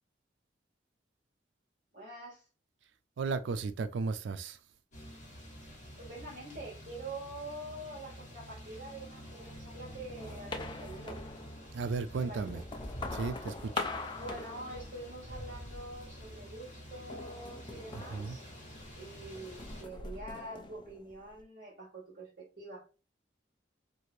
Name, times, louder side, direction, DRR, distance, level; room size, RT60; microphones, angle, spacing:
voice 1, 1.9-2.5 6.0-11.2 12.1-12.6 14.2-18.5 18.9-22.3 22.6-22.8, right 2 dB, 50° right, 1.2 m, -45 dB
voice 2, 3.2-4.6 11.7-12.6 13.1-13.9 17.9-18.4, right 4 dB, 80° right, 0.4 m, -35 dB
sound 1, 4.9-19.8, equal, 40° left, 1.2 m, -48 dB
sound 2, 10.2-11.8 12.3-15.3 15.7-16.3 17.1-19.0 19.3-21.4, left 3 dB, 25° left, 0.3 m, -43 dB
2.8 x 2.5 x 3.1 m
head